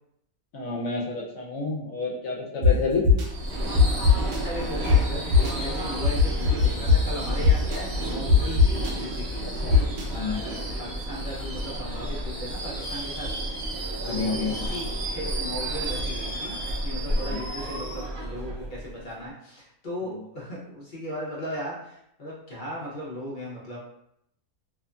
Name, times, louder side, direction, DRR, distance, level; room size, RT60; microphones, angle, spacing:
voice 1, 0.5-3.1 9.4-9.8 10.1-10.4 14.0-14.6 17.1-17.4 20.1-20.2, left 4 dB, 70° left, -3 dB, 0.9 m, -30 dB
sound 1, 2.6-2.7 3.0-3.3 3.8-4.4 4.9-5.0 5.3-5.5 6.0-7.0 7.4-7.8 8.3-8.9 9.7-10.0, left 6 dB, 85° right, 1.2 m, -17 dB
Subway metro underground / Screech, 3.2-19.2, right 1 dB, 55° right, 0.7 m, -31 dB
voice 2, 4.2-9.4 10.1-13.3 14.0-16.6 16.8-23.8, equal, 50° left, -6 dB, 0.6 m, -37 dB
2.8 x 2.5 x 2.2 m, 0.76 s
omnidirectional pair, 1.6 m